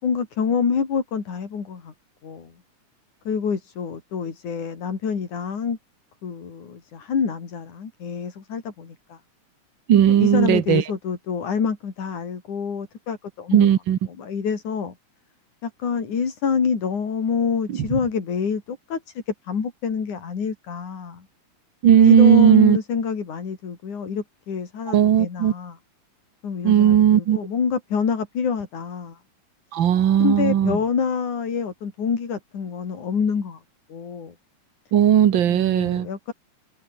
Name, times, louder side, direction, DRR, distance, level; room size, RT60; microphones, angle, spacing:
voice 1, 0.0-1.9 2.2-2.5 3.2-5.8 6.2-9.2 10.1-13.7 14.1-14.9 15.6-21.3 22.0-25.8 26.4-29.2 30.2-33.6 33.9-34.3 35.5-36.3, left 6 dB, 70° left, 5.1 m, -27 dB
voice 2, 9.9-10.8 13.5-14.0 21.8-22.8 24.9-25.5 26.6-27.4 29.7-30.8 34.9-36.1, right 10 dB, 60° right, 1.3 m, -16 dB
omnidirectional pair, 3.6 m